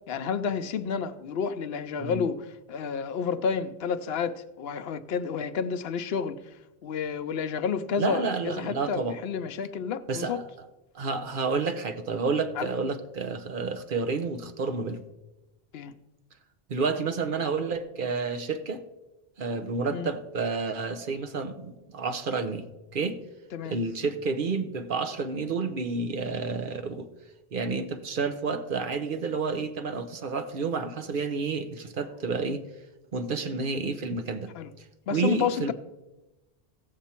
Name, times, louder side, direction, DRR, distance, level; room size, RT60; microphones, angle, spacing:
voice 1, 0.0-6.4 6.8-10.4 12.6-12.7 15.7-15.9 19.9-20.1 23.5-23.8 34.5-34.7 35.1-35.7, left 6 dB, 75° left, 0.8 m, -30 dB
voice 2, 8.0-9.2 10.1-10.5 10.9-15.0 16.7-18.8 19.4-22.6 22.9-23.2 23.6-27.1 27.5-32.6 33.1-34.5 34.8-34.9 35.1-35.7, right 4 dB, 60° right, 0.9 m, -30 dB
16.0 x 7.0 x 4.3 m
omnidirectional pair, 1.0 m